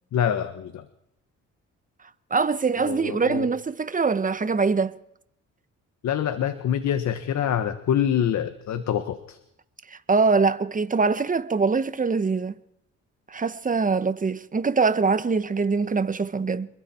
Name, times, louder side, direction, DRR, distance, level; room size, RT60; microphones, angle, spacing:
voice 1, 0.1-0.8 2.8-3.5 6.0-9.4, left 9 dB, 65° left, 1.6 m, -25 dB
voice 2, 2.3-5.0 9.9-12.5 13.3-16.7, right 4 dB, 25° right, 1.3 m, -23 dB
27.5 x 22.0 x 4.6 m
cardioid pair, 90°, 30 cm